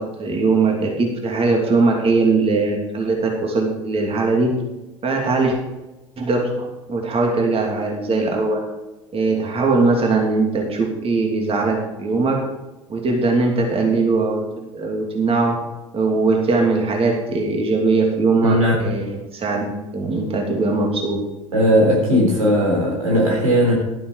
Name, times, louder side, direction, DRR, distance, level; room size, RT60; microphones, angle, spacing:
voice 1, 0.0-4.6 5.0-5.6 6.2-8.6 9.1-12.5 12.9-15.7 15.9-21.2, right 3 dB, 35° right, 1 dB, 2.9 m, -20 dB
voice 2, 18.4-18.8 21.5-23.7, equal, 90° right, -2 dB, 3.9 m, -17 dB
12.0 x 9.0 x 4.8 m, 1.1 s
hypercardioid pair, 70°, 17 cm